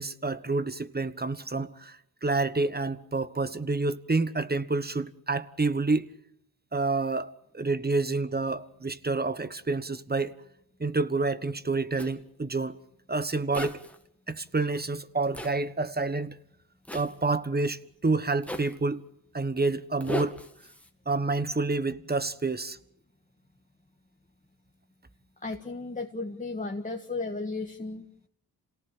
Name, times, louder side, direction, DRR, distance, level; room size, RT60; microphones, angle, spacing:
voice 1, 0.0-6.1 6.7-10.3 10.8-12.8 13.1-13.8 14.3-16.4 16.9-19.0 19.3-20.4 21.1-22.8, right 3 dB, 25° right, 1.3 m, -28 dB
Zipper (clothing), 12.0-12.1 13.5-14.0 15.3-15.5 16.9-17.1 18.4-18.8 20.0-20.9, left 1 dB, 5° left, 2.3 m, -36 dB
voice 2, 25.4-28.3, left 3 dB, 20° left, 1.8 m, -35 dB
27.0 x 18.0 x 7.5 m
cardioid pair, 60°, 41 cm